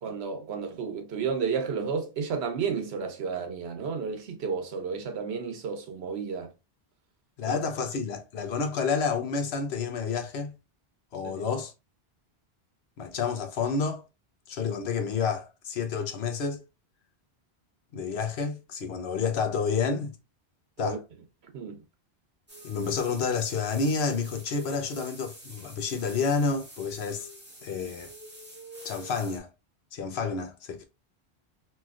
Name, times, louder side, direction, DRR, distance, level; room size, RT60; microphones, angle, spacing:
voice 1, 0.0-6.5 7.4-7.5 11.2-11.3 20.8-21.0 21.5-21.8, right 5 dB, 85° right, 1.0 m, -32 dB
voice 2, 7.4-10.5 11.1-11.7 13.0-14.0 14.5-16.6 17.9-20.1 20.8-21.0 22.6-27.3 27.6-28.1 28.8-29.5 29.9-30.9, left 5 dB, 80° left, 0.9 m, -29 dB
sound 1, 22.5-29.4, right 1 dB, 10° right, 0.8 m, -47 dB
3.1 x 2.8 x 2.3 m
omnidirectional pair, 1.1 m